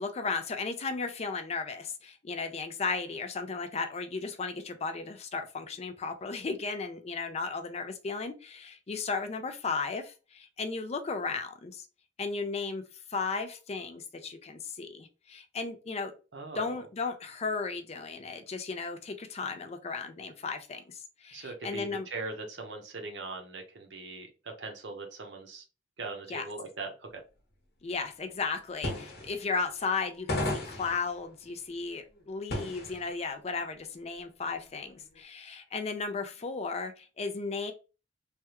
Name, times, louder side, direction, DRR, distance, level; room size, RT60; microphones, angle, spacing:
voice 1, 0.0-11.9 12.2-12.8 13.1-16.1 16.5-22.1 26.3-26.4 27.8-37.7, left 4 dB, 35° left, 8 dB, 0.4 m, -35 dB
voice 2, 16.3-16.6 21.3-25.6 26.0-27.2, right 3 dB, 75° right, 3 dB, 0.8 m, -40 dB
sound 1, 28.5-28.6 28.8-30.0 30.3-33.2 33.5-33.6 34.3-35.2, left 1 dB, 60° left, 0.9 m, -35 dB
3.3 x 2.3 x 2.9 m, 0.31 s
head